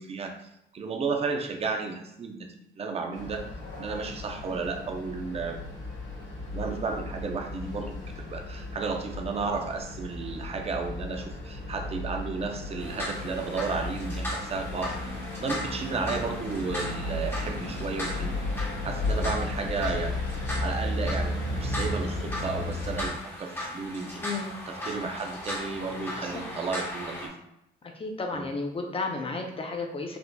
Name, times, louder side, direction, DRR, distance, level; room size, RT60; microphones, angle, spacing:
voice 1, 0.0-3.4 3.8-5.6 6.5-14.9 15.4-18.5 18.8-20.2 20.6-24.2 24.7-27.3 28.3-28.5, right 4 dB, 30° right, 4 dB, 0.5 m, -33 dB
sound 1, 3.1-23.1, left 2 dB, 90° left, 1.4 m, -34 dB
sound 2, 12.6-21.5, right 2 dB, 80° right, 0.8 m, -48 dB
sound 3, 12.8-27.3, left 1 dB, 10° left, 1.0 m, -38 dB
voice 2, 24.2-24.5 26.2-26.3 28.0-30.2, left 3 dB, 30° left, 3 dB, 0.6 m, -33 dB
4.3 x 2.6 x 2.2 m, 0.81 s
cardioid pair, 90°, 20 cm